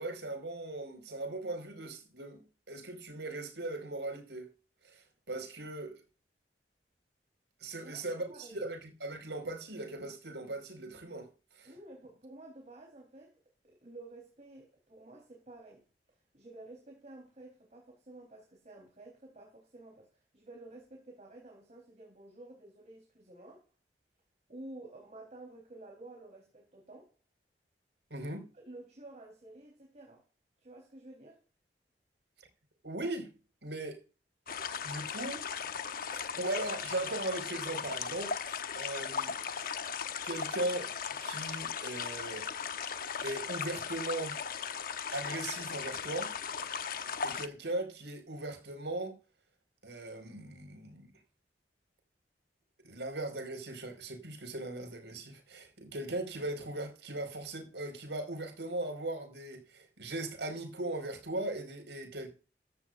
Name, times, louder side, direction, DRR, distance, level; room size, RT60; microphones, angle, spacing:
voice 1, 0.0-4.5 4.8-6.0 7.6-11.3 11.5-11.7 28.1-28.5 32.8-33.3 33.6-34.0 34.8-35.5 36.1-39.3 40.2-40.9 41.2-42.5 43.2-44.4 45.1-46.3 47.0-49.2 49.8-51.1 52.8-62.3, right 2 dB, 85° right, 4.9 m, -39 dB
voice 2, 7.8-8.6 11.6-15.8 16.3-23.7 24.5-27.1 28.5-30.2 30.6-31.4, right 2 dB, 40° right, 3.9 m, -51 dB
sound 1, 34.5-47.5, left 6 dB, 55° left, 0.9 m, -37 dB
15.5 x 13.0 x 2.6 m
head